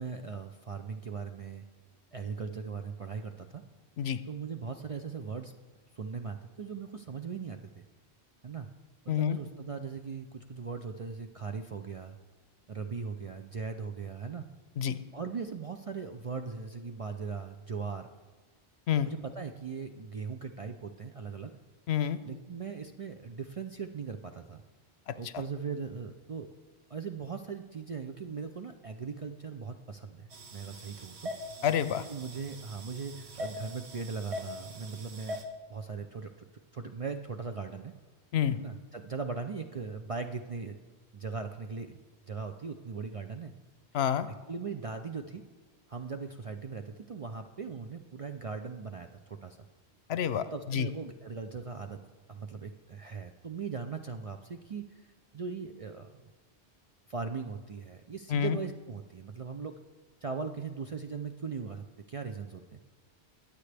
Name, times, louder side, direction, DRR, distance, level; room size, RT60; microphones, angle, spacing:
voice 1, 0.0-1.6 2.1-3.6 4.3-5.5 6.0-7.8 8.4-8.7 9.0-12.2 12.7-14.4 15.1-18.1 19.0-21.5 22.3-24.6 25.1-26.5 26.9-31.3 32.1-35.4 35.7-36.5 36.7-37.9 38.5-40.8 41.1-42.0 42.3-43.5 44.5-45.5 45.9-49.6 50.5-52.0 52.3-54.9 55.3-56.3 57.1-59.8 60.2-62.8, right 5 dB, 45° right, 6 dB, 0.4 m, -39 dB
voice 2, 9.1-9.4 14.8-15.0 18.9-19.1 21.9-22.2 25.1-25.2 31.6-32.0 38.3-38.6 43.9-44.3 50.1-50.9 58.3-58.6, left 9 dB, 75° left, 14 dB, 0.8 m, -28 dB
sound 1, 30.3-35.4, left 1 dB, 75° right, 1.4 m, -42 dB
21.5 x 8.2 x 3.4 m, 1.3 s
omnidirectional pair, 1.1 m